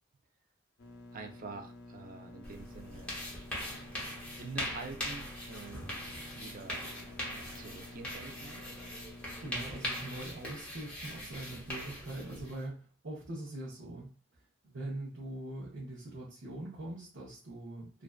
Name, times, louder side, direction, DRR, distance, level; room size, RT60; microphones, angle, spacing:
sound 1, 0.8-10.2, left 2 dB, 65° left, 0.5 m, -51 dB
voice 1, 1.1-3.2 4.4-6.0 6.3-6.9 7.6-8.9, right 4 dB, 45° right, 5 dB, 0.4 m, -46 dB
sound 2, 2.4-12.7, equal, 5° left, 0.7 m, -41 dB
voice 2, 9.4-14.1 14.6-18.0, right 1 dB, 75° right, -6 dB, 0.8 m, -42 dB
2.5 x 2.2 x 2.3 m, 0.40 s
head